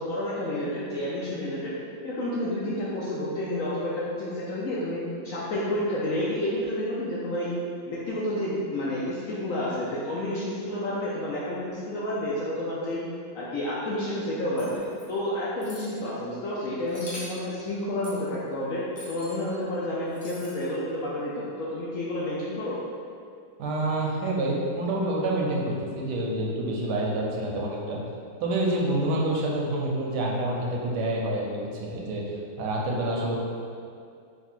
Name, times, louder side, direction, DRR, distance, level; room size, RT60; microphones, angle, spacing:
voice 1, 0.0-1.7 2.0-5.0 5.2-7.5 7.9-13.0 13.3-14.8 15.1-22.8, left 1 dB, 70° left, -7 dB, 0.8 m, -30 dB
sound 1, 14.6-15.1 15.6-15.9 16.9-17.4 18.0-18.2 18.9-19.4 20.1-20.7, left 1 dB, 35° left, 0.5 m, -43 dB
voice 2, 23.6-28.0 28.4-33.4, right 1 dB, 80° right, -2 dB, 1.1 m, -27 dB
3.3 x 2.4 x 4.4 m, 2.3 s
omnidirectional pair, 1.8 m